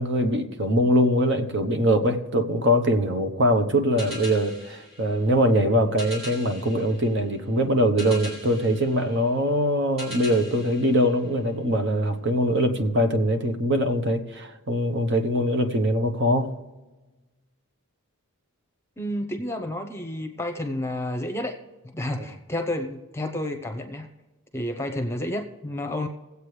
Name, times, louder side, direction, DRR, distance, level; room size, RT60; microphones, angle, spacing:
voice 1, 0.0-16.6, equal, 55° right, 7 dB, 1.0 m, -22 dB
sound 1, 4.0-11.8, equal, 30° right, 4.6 m, -42 dB
voice 2, 19.0-21.5 21.8-24.1 24.5-26.1, left 1 dB, 10° left, 6 dB, 0.8 m, -30 dB
20.0 x 8.2 x 3.3 m, 1.2 s
head